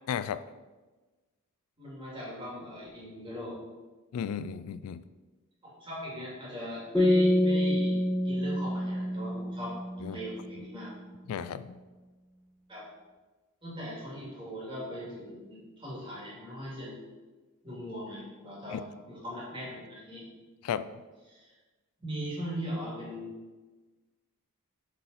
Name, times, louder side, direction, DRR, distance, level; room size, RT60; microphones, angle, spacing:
voice 1, 0.1-0.4 4.1-5.0 10.0-10.2 11.3-11.8 18.7-18.8 20.6-20.9, left 8 dB, 75° left, 14 dB, 0.3 m, -34 dB
voice 2, 1.8-3.6 5.6-8.0 8.2-10.9 12.7-12.8 13.6-17.0 17.6-18.8 19.1-20.2 21.3-21.5 22.0-23.3, equal, 20° right, -5 dB, 2.3 m, -39 dB
sound 1, 6.9-10.4, left 1 dB, 5° left, 1.4 m, -27 dB
8.5 x 4.1 x 4.0 m, 1.2 s
head